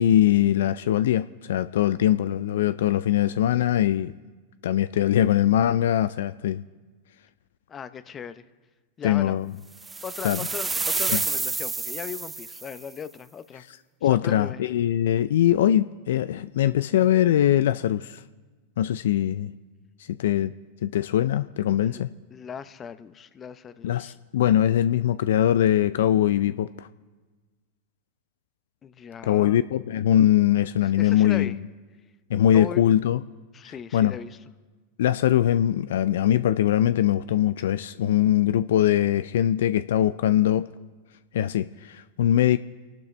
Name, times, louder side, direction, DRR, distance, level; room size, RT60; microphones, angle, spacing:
voice 1, 0.0-4.1 4.6-6.6 9.0-9.5 10.2-10.4 11.1-11.2 14.0-18.2 18.8-19.5 20.1-20.5 20.8-22.1 23.8-26.9 29.2-31.6 32.3-33.2 33.9-34.2 35.0-40.7 41.3-42.6, left 11 dB, 75° left, 14 dB, 0.3 m, -22 dB
voice 2, 7.7-8.4 9.0-9.4 10.0-13.6 14.1-14.6 21.8-22.0 22.3-24.2 28.8-29.6 30.8-31.6 32.5-32.8 33.5-34.4, left 7 dB, 30° left, 13 dB, 0.7 m, -38 dB
sound 1, 9.8-12.8, right 4 dB, 15° right, 0.5 m, -29 dB
29.0 x 12.0 x 3.3 m, 1.3 s
hypercardioid pair, 100°, 0 cm